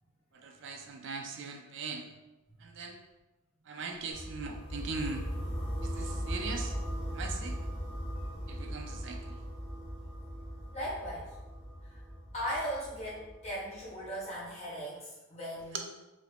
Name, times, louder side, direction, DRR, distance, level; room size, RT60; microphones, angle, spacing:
voice 1, 0.3-2.1 2.6-3.0 3.7-5.3 5.8-6.7 7.1-7.6 8.5-9.4 15.7-15.8, right 4 dB, 55° right, 4 dB, 0.4 m, -40 dB
sound 1, 4.1-14.0, equal, 5° right, 0.9 m, -39 dB
voice 2, 10.7-11.3 11.8-12.0 12.3-15.8, equal, 30° left, -7 dB, 1.1 m, -38 dB
2.8 x 2.6 x 3.3 m, 1.1 s
head